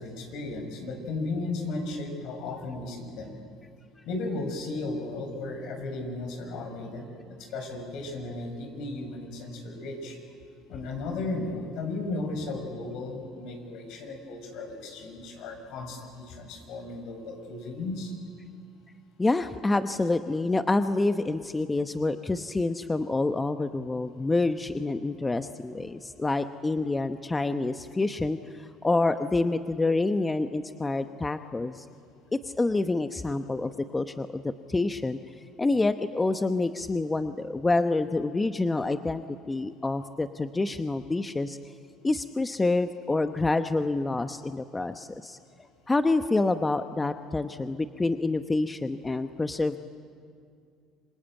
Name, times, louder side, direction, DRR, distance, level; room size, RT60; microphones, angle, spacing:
voice 1, 0.0-3.3 4.1-10.2 10.7-18.1, left 2 dB, 70° left, 5 dB, 6.1 m, -35 dB
voice 2, 19.2-31.9 32.4-34.4 34.7-35.2 35.6-41.6 42.0-45.4 45.9-49.8, left 2 dB, 15° left, 9 dB, 1.0 m, -27 dB
27.0 x 23.5 x 9.0 m, 2.3 s
supercardioid pair, 90°, 0 cm